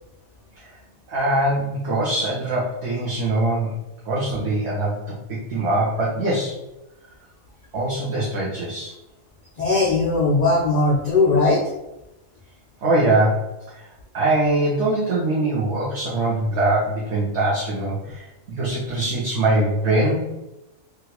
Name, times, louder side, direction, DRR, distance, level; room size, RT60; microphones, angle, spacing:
voice 1, 1.1-3.7 4.1-6.6 7.7-8.9 12.8-13.9 14.1-20.3, right 2 dB, 60° right, -6 dB, 0.9 m, -23 dB
voice 2, 9.6-11.6, left 3 dB, 65° left, -3 dB, 0.4 m, -19 dB
3.1 x 2.4 x 2.9 m, 0.94 s
omnidirectional pair, 1.4 m